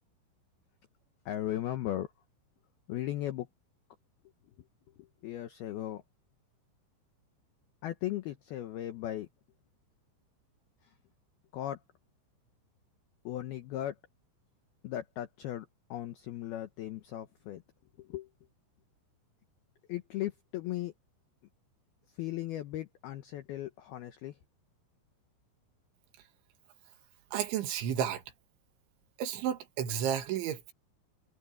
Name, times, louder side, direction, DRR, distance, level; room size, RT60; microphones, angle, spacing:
voice 1, 1.3-2.1 2.9-3.5 5.2-6.0 7.8-9.3 11.5-11.8 13.3-13.9 14.8-15.7 15.9-17.6 18.1-18.3 19.9-20.9 22.2-24.3, left 13 dB, 80° left, 2.2 m, -37 dB
voice 2, 27.3-28.2 29.2-30.7, right 9 dB, 70° right, 4.0 m, -32 dB
omnidirectional pair, 5.8 m